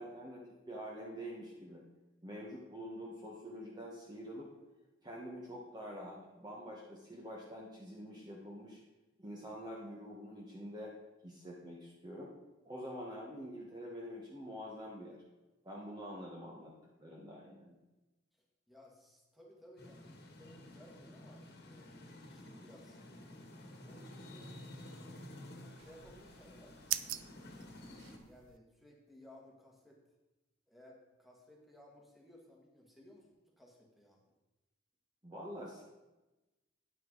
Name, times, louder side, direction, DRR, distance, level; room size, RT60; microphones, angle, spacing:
voice 1, 0.0-1.8 2.2-4.5 5.0-8.8 9.2-10.9 11.2-12.3 12.6-15.2 15.6-16.7 17.0-17.8 35.2-35.8, equal, 20° right, -4 dB, 1.2 m, -46 dB
voice 2, 18.7-23.5 23.8-24.6 25.7-26.8 27.9-30.0 30.7-34.3, left 1 dB, ahead, -1 dB, 1.7 m, -60 dB
sound 1, 19.8-28.2, left 1 dB, 55° left, 1.5 m, -52 dB
sound 2, 25.8-28.6, right 13 dB, 85° right, 0.4 m, -43 dB
9.2 x 9.2 x 3.9 m, 1.1 s
head